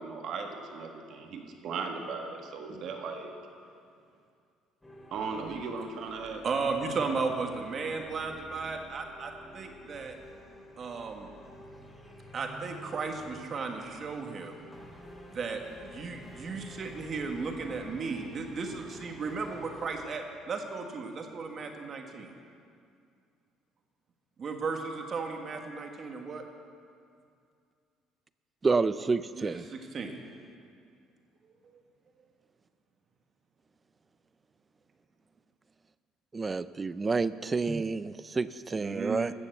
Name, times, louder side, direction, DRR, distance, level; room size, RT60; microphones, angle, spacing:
voice 1, 0.0-3.3 5.1-6.4, right 4 dB, 60° right, 3 dB, 1.5 m, -37 dB
sound 1, 4.8-20.0, equal, 10° left, 2.3 m, -50 dB
voice 2, 6.4-10.1 10.8-11.3 12.3-14.7 15.3-22.3 24.4-26.4 29.3-30.1 38.8-39.2, right 4 dB, 40° right, 4 dB, 1.5 m, -35 dB
voice 3, 28.6-29.6 36.3-39.3, right 4 dB, 20° right, 15 dB, 0.4 m, -29 dB
13.5 x 7.2 x 7.9 m, 2.3 s
cardioid pair, 115°, 0 cm